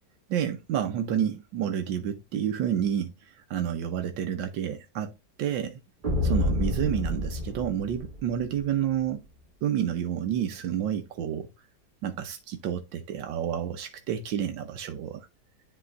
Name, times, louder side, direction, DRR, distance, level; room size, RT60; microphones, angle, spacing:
voice 1, 0.3-3.1 3.5-5.1 5.4-5.8 6.2-9.2 9.6-11.5 12.0-15.3, right 9 dB, 85° right, 1.5 m, -29 dB
sound 1, 6.0-8.6, left 1 dB, 25° right, 2.1 m, -28 dB
10.5 x 4.2 x 2.5 m
omnidirectional pair, 2.0 m